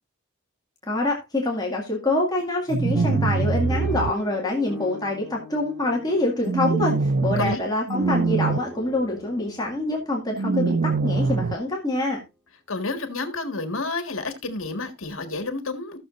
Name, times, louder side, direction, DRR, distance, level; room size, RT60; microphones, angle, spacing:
voice 1, 0.8-12.2, left 2 dB, 20° left, 2.0 m, -26 dB
sound 1, 2.7-4.1 6.4-7.5 7.9-8.6 10.4-11.5, right 4 dB, 50° right, 0.4 m, -23 dB
sound 2, 2.9-11.0 11.6-11.7 12.0-12.3, equal, ahead, 1.7 m, -40 dB
voice 2, 12.7-16.0, left 3 dB, 70° left, 1.7 m, -30 dB
16.5 x 6.7 x 2.5 m
head